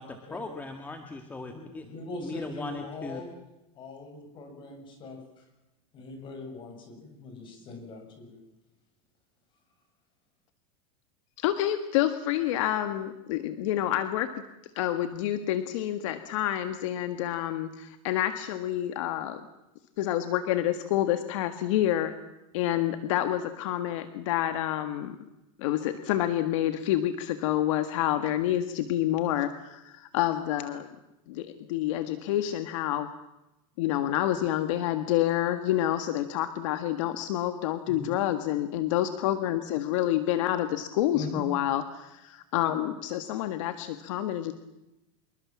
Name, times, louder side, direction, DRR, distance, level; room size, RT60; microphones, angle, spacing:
voice 1, 0.0-1.8 2.2-3.2, left 3 dB, 10° left, 5 dB, 1.8 m, -38 dB
voice 2, 1.8-3.3 3.7-5.4 5.9-8.3 37.9-38.1 41.1-41.5, left 2 dB, 25° left, 4 dB, 7.6 m, -41 dB
voice 3, 11.4-14.3 14.8-19.5 20.0-22.1 22.5-25.2 25.6-30.9 31.3-33.1 33.8-44.5, left 12 dB, 55° left, 10 dB, 1.7 m, -28 dB
26.5 x 22.5 x 7.4 m, 0.95 s
supercardioid pair, 165°, 19 cm